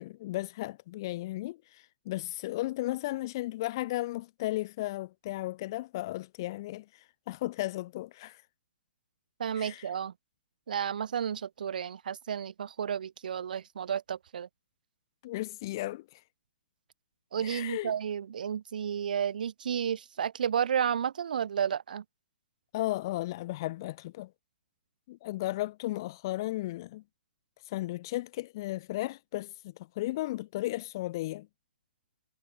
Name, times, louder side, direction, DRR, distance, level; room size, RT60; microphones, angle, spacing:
voice 1, 0.0-8.4 9.6-9.9 15.2-16.2 17.4-17.9 22.7-24.3 25.1-27.0 27.7-31.5, left 17 dB, 25° left, 0.5 m, -35 dB
voice 2, 9.4-10.1 10.7-14.5 17.3-22.0, right 8 dB, 55° right, 2.3 m, -32 dB
hypercardioid pair, 180°, 6 cm